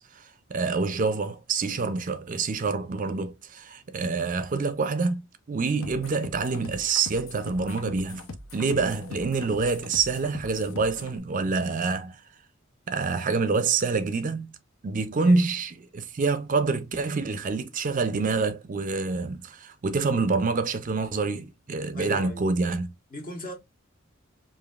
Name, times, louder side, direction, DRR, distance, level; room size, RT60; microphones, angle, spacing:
voice 1, 0.0-5.2 5.5-8.3 8.5-12.2 12.9-14.5 14.8-22.9, right 4 dB, 40° right, 0.5 m, -27 dB
sound 1, 5.8-11.2, left 3 dB, 85° left, 0.7 m, -42 dB
voice 2, 21.9-22.4 23.1-23.5, equal, 45° left, 1.2 m, -37 dB
5.0 x 2.7 x 2.3 m
head